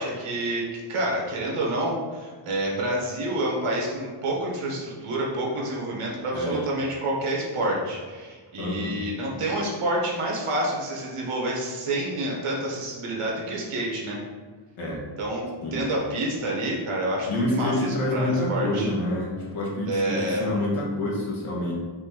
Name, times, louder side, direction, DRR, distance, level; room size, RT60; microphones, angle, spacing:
voice 1, 0.0-14.2 15.2-15.4 15.7-18.9 19.9-20.5, right 1 dB, 90° right, -3 dB, 1.4 m, -28 dB
voice 2, 6.3-6.6 8.6-8.9 14.8-15.0 15.6-15.8 17.3-21.7, left 1 dB, 85° left, -4 dB, 1.5 m, -27 dB
5.1 x 2.8 x 3.8 m, 1.5 s
wide cardioid pair, 125°, 49 cm